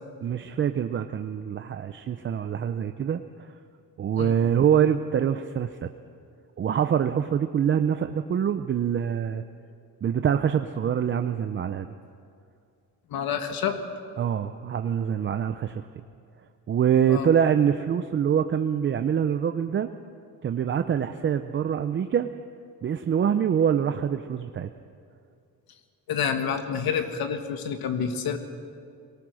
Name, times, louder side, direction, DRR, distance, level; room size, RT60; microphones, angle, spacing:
voice 1, 0.2-3.5 4.0-5.9 6.6-9.4 10.0-11.9 14.2-15.8 16.7-19.9 20.4-22.3 22.8-24.7, right 8 dB, 35° right, 8 dB, 0.5 m, -25 dB
voice 2, 13.1-13.8 17.1-17.3 26.1-28.4, left 7 dB, 75° left, 7 dB, 1.8 m, -28 dB
22.5 x 18.5 x 6.3 m, 2.4 s
cardioid pair, 165°, 36 cm